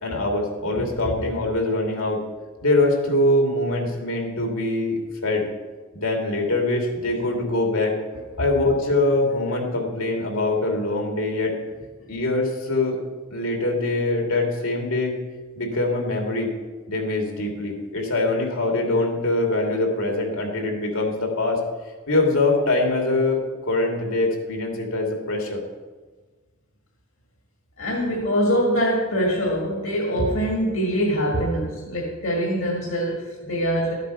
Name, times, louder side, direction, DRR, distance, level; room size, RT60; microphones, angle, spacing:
voice 1, 0.0-2.2 2.6-5.5 5.9-7.9 8.4-11.5 12.1-13.0 13.3-15.1 15.6-16.5 16.9-21.6 22.1-23.4 23.7-25.6, left 2 dB, 90° left, 0 dB, 2.7 m, -23 dB
voice 2, 27.8-33.9, equal, 70° left, -2 dB, 2.0 m, -23 dB
13.0 x 8.2 x 5.6 m, 1.3 s
head